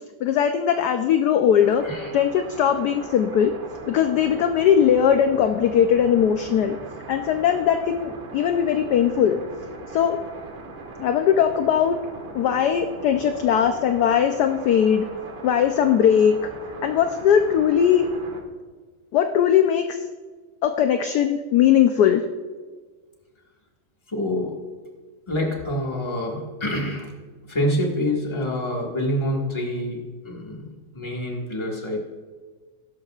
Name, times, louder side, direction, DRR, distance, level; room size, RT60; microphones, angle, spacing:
voice 1, 0.2-1.8 2.1-3.5 3.9-6.8 7.1-9.4 9.9-10.2 11.0-12.0 12.3-15.1 15.4-16.4 16.8-18.1 19.1-20.0 20.6-22.2, left 9 dB, 70° left, 7 dB, 1.0 m, -19 dB
sound 1, 1.6-18.4, right 3 dB, 70° right, 2.0 m, -39 dB
voice 2, 24.1-24.6 25.3-27.1 27.5-32.0, left 1 dB, 15° left, -1 dB, 1.5 m, -27 dB
16.5 x 12.0 x 2.4 m, 1.4 s
omnidirectional pair, 2.2 m